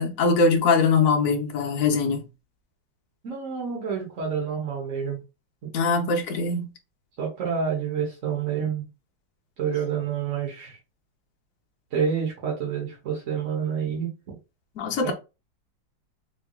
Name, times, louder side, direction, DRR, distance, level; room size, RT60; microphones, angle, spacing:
voice 1, 0.0-2.2 5.7-6.7 14.8-15.1, left 4 dB, 70° left, 0.8 m, -22 dB
voice 2, 3.2-5.2 7.2-8.9 9.6-10.8 11.9-14.4 15.0-15.1, right 7 dB, 45° right, 1.2 m, -28 dB
3.8 x 3.4 x 2.3 m
omnidirectional pair, 2.3 m